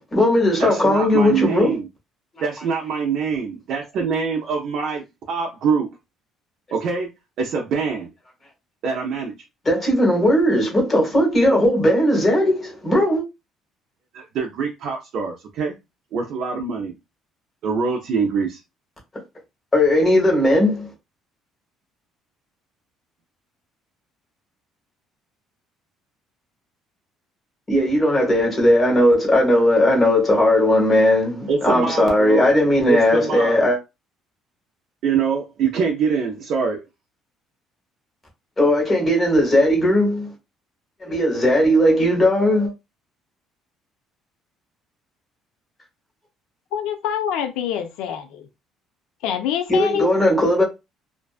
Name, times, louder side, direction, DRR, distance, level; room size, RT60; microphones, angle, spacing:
voice 1, 0.0-1.8 9.6-13.2 19.7-20.9 27.7-33.8 38.6-40.3 41.0-42.7 49.7-50.6, left 1 dB, 20° left, 1.2 m, -17 dB
voice 2, 0.6-1.9 2.4-5.9 6.7-7.1 7.4-8.1 8.8-9.3 14.1-15.8 16.1-16.9 17.6-18.6 31.5-32.5 32.9-33.6 35.0-36.8, right 5 dB, 55° right, 0.5 m, -24 dB
voice 3, 46.7-48.5 49.2-50.1, left 9 dB, 85° left, 0.4 m, -25 dB
2.5 x 2.2 x 2.4 m
cardioid pair, 145°, 0 cm